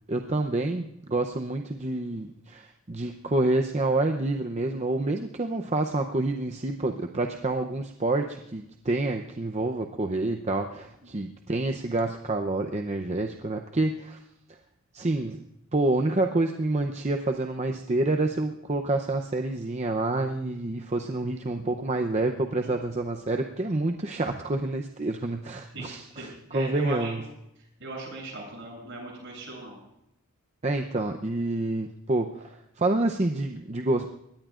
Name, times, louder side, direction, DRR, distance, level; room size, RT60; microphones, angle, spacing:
voice 1, 0.1-14.2 14.9-15.4 15.7-27.2 30.6-32.5 32.8-34.1, right 2 dB, 30° right, 4 dB, 0.7 m, -28 dB
voice 2, 25.7-27.3 27.8-29.8, right 1 dB, 60° right, -1 dB, 8.0 m, -38 dB
23.0 x 19.5 x 2.5 m, 0.80 s
head